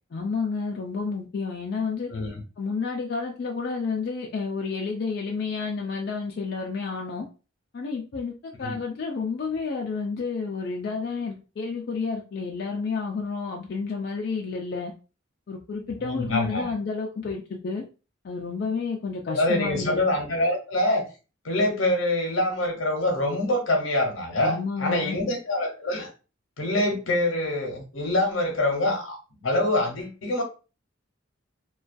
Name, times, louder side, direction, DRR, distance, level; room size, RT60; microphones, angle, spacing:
voice 1, 0.1-2.1 2.6-7.3 7.7-14.9 15.5-17.8 18.2-20.0 24.4-25.2, left 4 dB, 55° left, 0 dB, 0.3 m, -30 dB
voice 2, 16.0-16.6 19.3-21.0 21.4-26.1 26.6-29.2 29.4-30.4, left 1 dB, 80° left, 3 dB, 0.7 m, -25 dB
2.3 x 2.2 x 2.4 m, 0.33 s
head